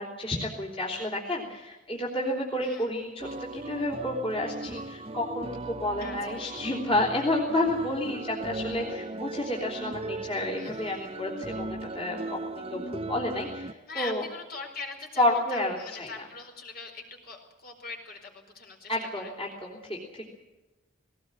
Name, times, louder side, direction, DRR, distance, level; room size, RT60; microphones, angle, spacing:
voice 1, 0.0-14.3 15.2-16.1 18.9-20.3, left 1 dB, 30° left, -3 dB, 3.5 m, -30 dB
sound 1, 3.2-13.7, right 2 dB, 30° right, 0.7 m, -38 dB
voice 2, 10.6-11.2 13.9-19.3, left 4 dB, 50° left, 2 dB, 4.7 m, -42 dB
19.5 x 18.5 x 8.7 m, 1.1 s
head